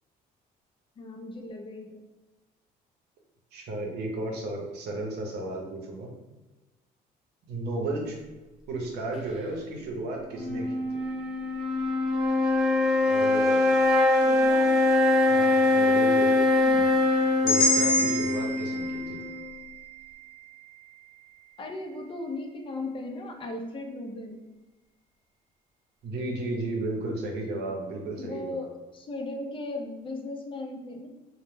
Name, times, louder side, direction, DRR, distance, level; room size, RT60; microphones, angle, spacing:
voice 1, 1.0-2.1 14.1-14.7 21.6-24.4 28.2-28.7 28.9-31.1, left 2 dB, 30° left, 3 dB, 0.4 m, -37 dB
voice 2, 3.5-6.1 7.5-8.2 8.7-10.7 13.0-13.6 15.3-16.4 16.7-16.9 17.4-19.2 26.0-28.7, right 2 dB, 75° right, 1 dB, 0.7 m, -34 dB
sound 1, 10.2-19.7, left 2 dB, 5° right, 0.7 m, -23 dB
sound 2, 17.5-21.5, left 1 dB, 55° left, 0.8 m, -29 dB
2.1 x 2.1 x 3.1 m, 1.1 s
cardioid pair, 110°, 17 cm